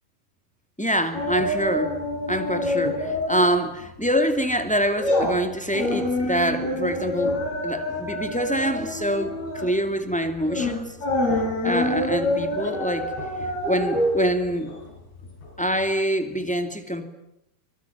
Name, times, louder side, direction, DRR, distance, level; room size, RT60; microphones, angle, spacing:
voice 1, 0.8-1.9 2.3-7.4 7.6-11.0 11.6-13.1 13.4-14.7 15.6-17.1, equal, 5° left, 6 dB, 1.7 m, -25 dB
sound 1, 1.1-3.6 3.9-4.1 4.5-15.5 15.8-15.9, left 1 dB, 90° left, 7.8 m, -26 dB
25.5 x 22.0 x 9.7 m, 0.81 s
omnidirectional pair, 4.4 m